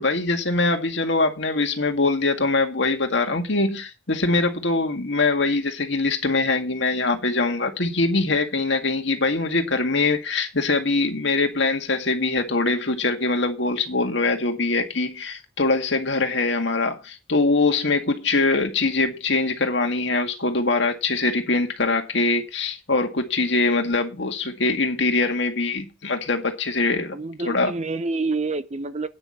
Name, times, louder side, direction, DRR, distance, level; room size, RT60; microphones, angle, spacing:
voice 1, 0.0-27.2 27.4-27.7, left 3 dB, 70° left, 2.0 m, -23 dB
voice 2, 27.1-29.1, right 3 dB, 35° right, 0.7 m, -27 dB
9.6 x 6.2 x 7.4 m
head